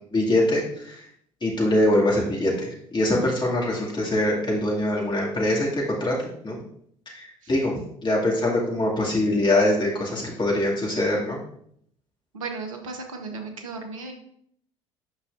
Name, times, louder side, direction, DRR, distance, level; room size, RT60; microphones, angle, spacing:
voice 1, 0.1-1.0 1.4-6.1 6.4-6.6 7.1-7.7 8.0-11.4, left 1 dB, 25° left, -3 dB, 2.4 m, -23 dB
voice 2, 12.3-14.1, right 4 dB, 80° right, 4 dB, 0.9 m, -35 dB
8.1 x 5.6 x 2.6 m, 0.67 s
figure-of-eight pair, 55°, 17 cm